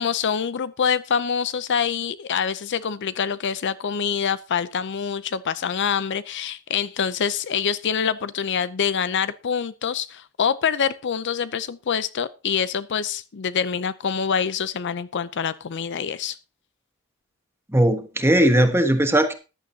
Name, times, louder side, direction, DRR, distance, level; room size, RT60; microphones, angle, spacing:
voice 1, 0.0-16.4, left 7 dB, 55° left, 0.5 m, -25 dB
voice 2, 17.7-19.3, right 1 dB, 10° right, 1.3 m, -18 dB
14.5 x 11.0 x 2.8 m
head